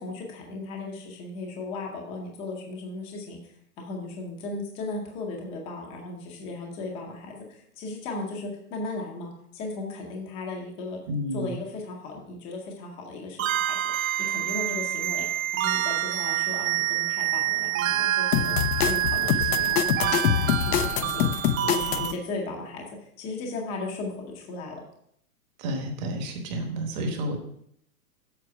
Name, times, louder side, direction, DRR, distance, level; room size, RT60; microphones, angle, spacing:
voice 1, 0.0-11.0 11.3-24.8, left 3 dB, 15° left, 0 dB, 0.6 m, -36 dB
voice 2, 11.1-11.5 25.6-27.4, right 1 dB, 30° right, 4 dB, 1.2 m, -30 dB
sound 1, 13.4-22.1, right 12 dB, 60° right, 0.6 m, -27 dB
sound 2, 18.3-22.1, left 10 dB, 85° left, 0.6 m, -25 dB
7.7 x 4.6 x 5.4 m, 0.71 s
hypercardioid pair, 165°, 45 cm